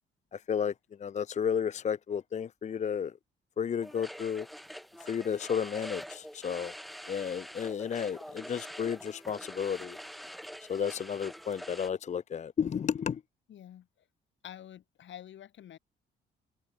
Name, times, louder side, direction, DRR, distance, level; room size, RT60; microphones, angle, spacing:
voice 1, 0.3-0.7 1.0-3.1 3.6-4.5 5.0-6.7 7.1-10.0 10.7-13.2, left 7 dB, 35° left, 0.5 m, -32 dB
sound 1, 3.8-11.9, equal, ahead, 3.7 m, -45 dB
voice 2, 13.5-14.1 14.4-15.8, left 11 dB, 70° left, 5.4 m, -48 dB
cardioid pair, 90°, 20 cm